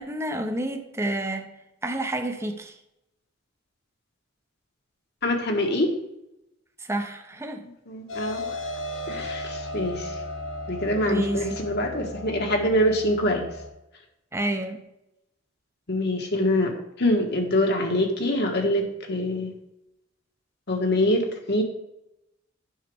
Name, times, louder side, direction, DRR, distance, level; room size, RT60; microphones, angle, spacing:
voice 1, 0.0-1.5 1.8-2.7 6.8-7.6 11.1-11.4 14.3-14.8, right 1 dB, 15° right, 5 dB, 0.9 m, -29 dB
voice 2, 5.2-5.9 7.9-8.5 9.1-10.1 10.7-13.5 15.9-19.5 20.7-21.6, left 1 dB, 55° left, 3 dB, 1.6 m, -24 dB
sound 1, 8.1-13.7, left 1 dB, 80° left, 1.9 m, -35 dB
9.5 x 6.5 x 3.6 m, 0.88 s
head